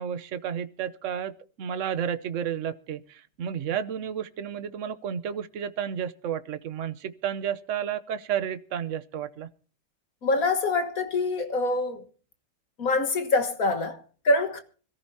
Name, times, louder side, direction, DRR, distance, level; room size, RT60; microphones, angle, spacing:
voice 1, 0.0-1.3 1.6-9.5, right 8 dB, 65° right, 0.7 m, -31 dB
voice 2, 10.2-12.0 12.8-14.6, left 2 dB, 45° left, 1.7 m, -25 dB
25.5 x 14.0 x 2.8 m
omnidirectional pair, 2.4 m